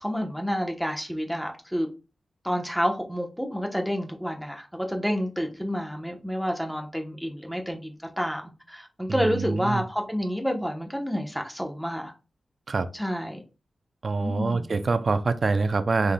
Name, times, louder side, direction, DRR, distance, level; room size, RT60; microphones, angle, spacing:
voice 1, 0.0-1.9 2.4-12.1 12.9-13.4 14.2-14.7, equal, ahead, 0.9 m, -29 dB
voice 2, 9.1-9.8 12.7-12.9 14.0-16.1, right 3 dB, 55° right, 0.5 m, -25 dB
5.6 x 3.3 x 2.2 m
wide cardioid pair, 80°, 0 cm